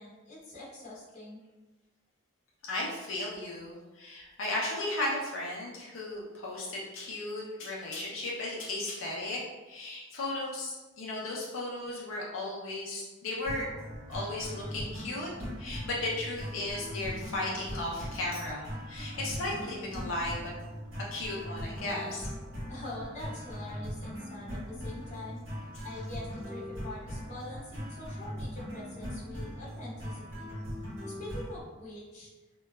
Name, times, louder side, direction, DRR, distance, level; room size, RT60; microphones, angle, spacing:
voice 1, 0.0-1.4 22.7-25.4 25.8-30.5 31.0-32.3, left 1 dB, 35° left, -8 dB, 0.8 m, -44 dB
voice 2, 2.6-9.4 9.7-13.6 14.1-15.3 15.6-20.5 21.1-22.3, left 2 dB, 90° left, -3 dB, 0.5 m, -35 dB
sound 1, 13.5-31.6, equal, 80° right, 1.1 m, -40 dB
2.8 x 2.2 x 2.2 m, 1.2 s
head